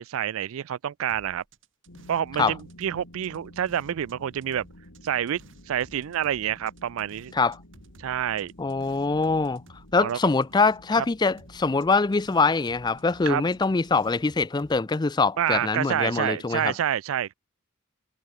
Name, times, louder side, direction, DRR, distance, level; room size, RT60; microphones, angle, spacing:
voice 1, 0.0-1.4 2.1-4.7 5.0-5.4 5.7-7.3 8.0-8.5 10.0-10.2 11.0-11.1 13.2-13.4 15.4-17.3, right 9 dB, 80° right, 0.4 m, -28 dB
sound 1, 1.1-4.2 4.4-11.0 11.3-14.8, right 2 dB, 60° right, 5.8 m, -55 dB
sound 2, 1.9-14.2, left 1 dB, 85° left, 6.6 m, -51 dB
voice 2, 8.6-9.6 9.9-16.7, left 4 dB, 20° left, 0.4 m, -23 dB
head